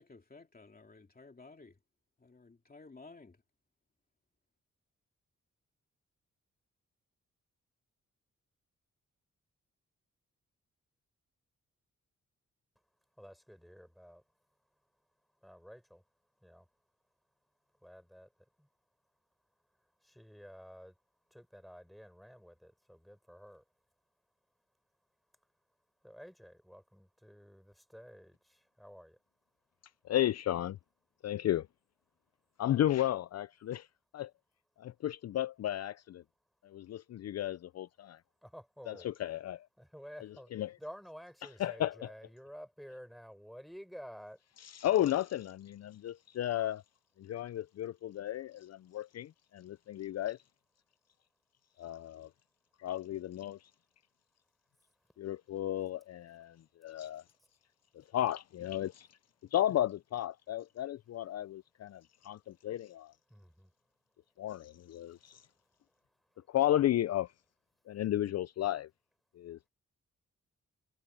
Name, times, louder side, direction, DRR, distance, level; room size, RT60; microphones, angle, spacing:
voice 1, 0.0-1.8 2.2-3.4, left 3 dB, 30° left, 2.8 m, -55 dB
voice 2, 13.2-14.2 15.4-16.1 16.4-16.7 17.7-18.7 19.7-21.0 21.3-23.7 26.0-29.2 38.4-39.1 39.8-44.4 54.8-55.0 63.3-63.7 65.1-66.6, equal, ahead, 6.8 m, -52 dB
voice 3, 30.0-30.8 31.2-31.7 32.6-33.9 34.1-34.3 34.8-36.2 36.6-38.2 38.9-39.7 40.5-40.7 41.6-42.1 44.6-46.8 47.2-50.4 51.8-52.3 52.8-53.7 55.2-57.2 57.9-59.2 59.5-63.1 64.4-65.5 66.5-67.3 67.9-68.9 69.3-69.7, left 12 dB, 60° left, 0.5 m, -34 dB
cardioid pair, 75°, 29 cm